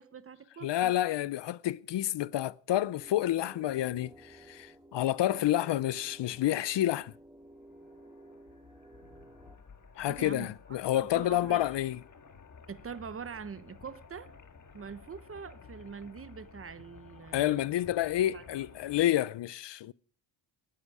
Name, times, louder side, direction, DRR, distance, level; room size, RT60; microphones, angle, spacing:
voice 1, 0.0-0.9 10.1-10.5 10.9-11.7 12.7-14.3 14.7-17.7 18.2-18.7, right 6 dB, 30° right, 1.0 m, -44 dB
voice 2, 0.6-7.1 10.0-12.0 17.3-19.9, left 13 dB, 65° left, 0.6 m, -29 dB
sound 1, 3.0-9.6, right 1 dB, 10° right, 2.0 m, -54 dB
sound 2, 7.5-19.1, left 5 dB, 40° left, 1.8 m, -54 dB
19.5 x 14.0 x 4.9 m
wide cardioid pair, 140°, 45 cm